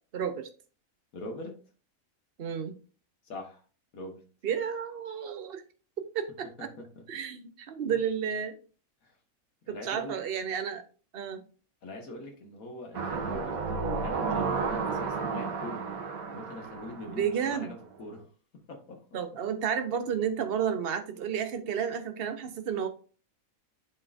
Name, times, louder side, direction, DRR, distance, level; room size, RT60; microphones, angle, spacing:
voice 1, 0.1-0.5 2.4-2.8 4.4-5.6 6.0-6.7 7.1-8.6 9.7-10.8 11.1-11.4 17.1-17.7 19.1-22.9, right 7 dB, 50° right, 7 dB, 1.0 m, -31 dB
voice 2, 1.1-1.6 3.3-3.6 3.9-4.2 6.6-7.0 9.0-9.1 9.6-10.2 11.8-15.9 16.3-18.3 18.7-19.0, left 1 dB, 75° left, 2 dB, 1.9 m, -42 dB
sound 1, 12.9-17.8 18.2-18.3, right 4 dB, 80° right, 1.4 m, -32 dB
11.0 x 3.7 x 2.6 m, 0.38 s
omnidirectional pair, 1.5 m